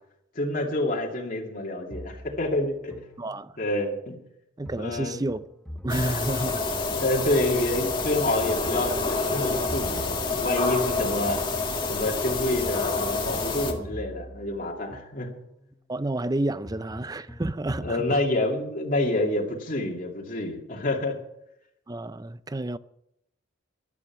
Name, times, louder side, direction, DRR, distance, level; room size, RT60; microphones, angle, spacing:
voice 1, 0.3-3.0 3.6-4.2 4.8-5.2 6.9-11.4 11.9-15.3 17.8-21.2, left 1 dB, 45° left, 2.5 m, -28 dB
sound 1, 1.9-3.8 4.7-7.7 8.7-11.7 12.7-15.7 16.7-18.0, equal, 5° left, 1.2 m, -43 dB
voice 2, 3.2-3.5 4.6-5.4 5.8-6.7 15.9-18.2 21.9-22.8, right 2 dB, 20° right, 0.5 m, -30 dB
sound 2, 5.9-13.7, left 3 dB, 25° left, 1.9 m, -28 dB
15.0 x 12.0 x 6.0 m
head